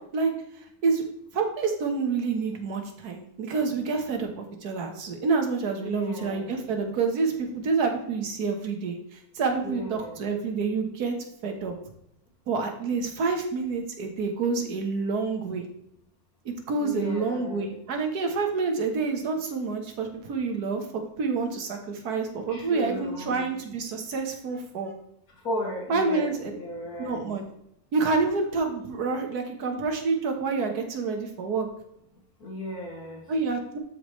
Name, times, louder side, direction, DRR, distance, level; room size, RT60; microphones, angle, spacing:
voice 1, 0.6-1.0 1.3-11.1 11.4-11.7 12.5-15.7 16.4-24.9 25.9-26.5 27.0-27.4 27.9-31.7 33.3-33.8, right 4 dB, 90° right, 4 dB, 1.8 m, -28 dB
voice 2, 5.8-6.5 9.6-10.2 16.8-17.7 22.5-23.5 25.4-27.2 32.4-33.2, left 1 dB, 80° left, -2 dB, 2.8 m, -35 dB
12.5 x 4.9 x 3.1 m, 0.78 s
omnidirectional pair, 1.6 m